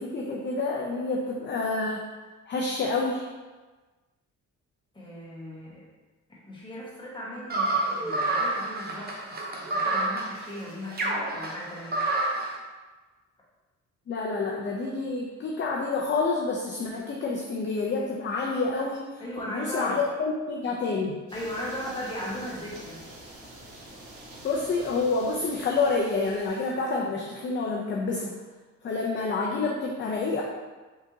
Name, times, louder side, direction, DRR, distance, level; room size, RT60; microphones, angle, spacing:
voice 1, 0.0-2.1 2.5-3.2 14.1-19.2 19.5-21.2 24.4-28.3 28.8-30.4, left 3 dB, 40° left, -1 dB, 0.5 m, -28 dB
voice 2, 4.9-5.9 6.3-12.0 19.2-20.0 21.3-23.0, equal, 15° left, -6 dB, 1.3 m, -37 dB
sound 1, 7.5-12.5, right 2 dB, 30° right, 0.8 m, -28 dB
sound 2, 21.3-26.7, right 1 dB, 70° right, 1.1 m, -46 dB
3.8 x 3.5 x 2.7 m, 1.3 s
cardioid pair, 90°, 30 cm